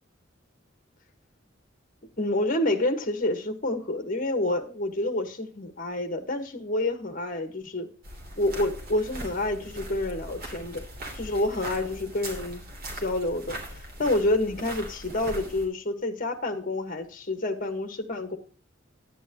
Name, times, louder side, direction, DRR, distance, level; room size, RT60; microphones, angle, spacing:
voice 1, 2.2-7.9 8.4-10.8 11.1-12.6 12.9-18.4, left 1 dB, 45° left, 8 dB, 1.4 m, -28 dB
sound 1, 8.0-15.7, right 1 dB, 50° right, 2.9 m, -40 dB
10.5 x 9.2 x 2.9 m, 0.41 s
head